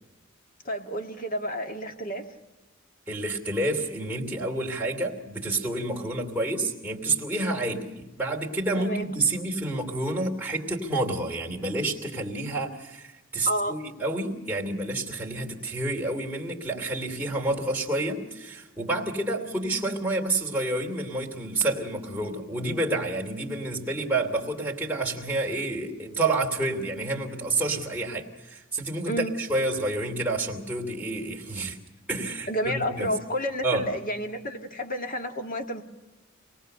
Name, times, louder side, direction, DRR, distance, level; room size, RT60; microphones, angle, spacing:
voice 1, 0.6-2.3 8.8-9.1 13.5-13.8 29.1-29.4 32.5-35.8, equal, 40° left, 5 dB, 1.9 m, -30 dB
voice 2, 3.1-29.1 29.4-31.8 32.1-33.1 33.6-33.9, right 2 dB, 10° right, -2 dB, 3.0 m, -29 dB
26.5 x 19.0 x 6.7 m, 1.1 s
head